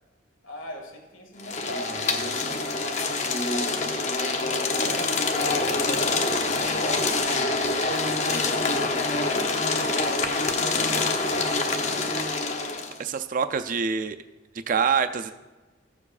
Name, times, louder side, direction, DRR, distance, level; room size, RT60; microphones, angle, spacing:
voice 1, 0.4-2.4 3.5-8.8, left 1 dB, 75° left, 1 dB, 1.8 m, -40 dB
sound 1, 1.4-13.0, left 3 dB, 35° left, 0.7 m, -25 dB
voice 2, 13.0-14.2 14.7-15.3, right 6 dB, 40° right, 9 dB, 0.3 m, -25 dB
14.5 x 6.9 x 2.4 m, 1.2 s
head